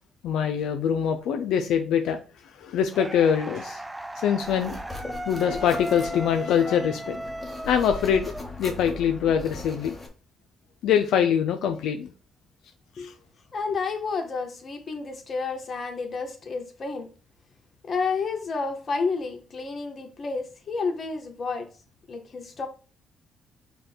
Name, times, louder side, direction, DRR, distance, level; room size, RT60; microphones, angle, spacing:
voice 1, 0.2-2.2 2.6-3.8 4.2-4.8 5.3-7.2 7.6-8.3 8.6-9.9 10.8-12.1 13.0-13.1, left 8 dB, 85° left, 0.4 m, -24 dB
sound 1, 2.9-9.0, right 1 dB, 15° right, 0.3 m, -36 dB
sound 2, 4.4-10.1, left 3 dB, 15° left, 1.3 m, -39 dB
voice 2, 13.5-17.1 17.8-21.7 22.1-22.7, left 4 dB, 45° left, 1.1 m, -30 dB
5.2 x 2.3 x 4.3 m
cardioid pair, 90°, 0 cm